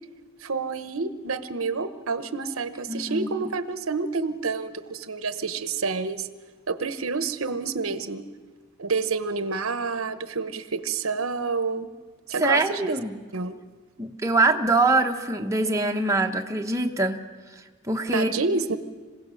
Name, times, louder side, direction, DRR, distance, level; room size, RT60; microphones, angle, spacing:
voice 1, 0.4-6.3 6.7-8.3 8.8-11.9 12.3-13.0 13.3-13.6 18.1-18.8, right 4 dB, 80° right, 11 dB, 1.0 m, -28 dB
voice 2, 2.9-3.4 12.4-13.2 14.0-17.2 17.9-18.3, right 2 dB, 15° right, 2 dB, 1.0 m, -23 dB
26.5 x 16.5 x 6.3 m, 1.4 s
head